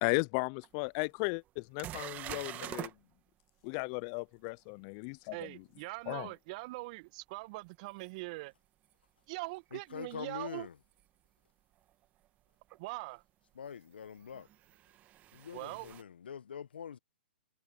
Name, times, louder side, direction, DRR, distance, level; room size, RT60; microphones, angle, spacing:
voice 1, 0.0-2.9 3.6-5.3 6.1-6.3, left 33 dB, 40° left, 0.4 m, -35 dB
sound 1, 0.6-0.7 1.2-1.3 1.8-2.9 8.1-8.2 10.9-11.0 12.7-12.8 14.2-16.0, right 14 dB, 30° right, 1.6 m, -44 dB
voice 2, 5.3-8.5 9.3-10.7 12.8-13.2 15.5-15.9, right 24 dB, 45° right, 1.4 m, -42 dB
voice 3, 9.7-10.7 13.5-14.5 15.3-17.0, left 8 dB, 75° left, 1.2 m, -44 dB
hypercardioid pair, 120°, 5 cm